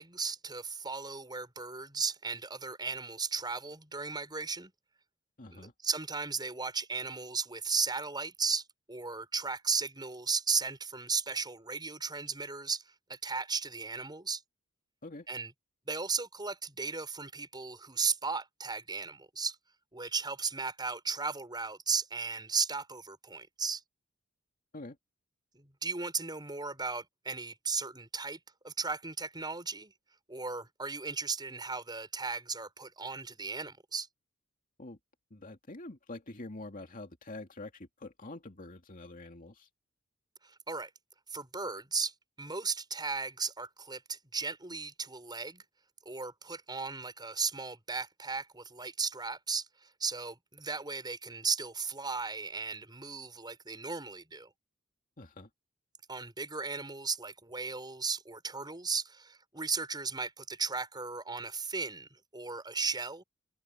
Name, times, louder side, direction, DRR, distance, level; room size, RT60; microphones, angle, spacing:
voice 1, 0.0-4.7 5.5-14.4 15.3-15.5 15.9-19.6 19.9-23.8 25.5-29.9 30.3-34.1 40.4-40.9 41.3-45.6 46.0-54.5 56.1-63.2, right 4 dB, 20° right, 6.3 m, -36 dB
voice 2, 5.4-5.7 15.0-15.3 24.7-25.0 34.8-35.0 35.3-39.7 55.2-55.5, left 2 dB, 40° left, 2.5 m, -46 dB
head